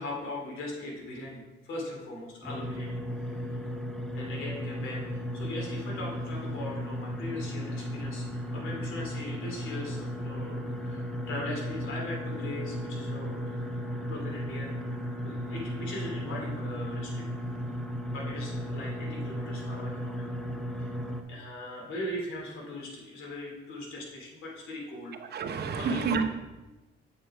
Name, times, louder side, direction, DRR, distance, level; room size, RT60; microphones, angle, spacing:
voice 1, 0.0-3.0 3.2-3.6 4.1-13.6 14.0-14.7 15.2-17.2 18.1-20.4 20.8-20.9 21.3-25.2 25.7-26.1, left 1 dB, 85° left, -2 dB, 2.7 m, -39 dB
sound 1, 2.4-21.2, equal, 5° left, 0.8 m, -35 dB
voice 2, 25.3-26.3, right 5 dB, 55° right, 6 dB, 0.9 m, -28 dB
7.5 x 5.4 x 4.8 m, 1.1 s
cardioid pair, 90°, 20 cm